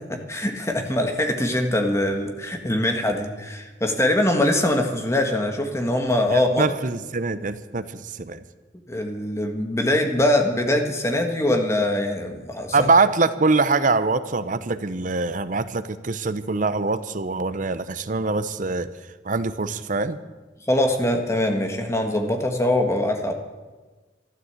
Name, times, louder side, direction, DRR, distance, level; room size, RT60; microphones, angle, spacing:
voice 1, 0.0-6.7 8.9-12.9 20.7-23.3, left 1 dB, 15° left, 4 dB, 1.6 m, -23 dB
voice 2, 6.3-8.4 12.7-18.9 19.2-20.2, right 3 dB, 45° right, 13 dB, 0.7 m, -23 dB
13.0 x 12.0 x 8.1 m, 1.3 s
head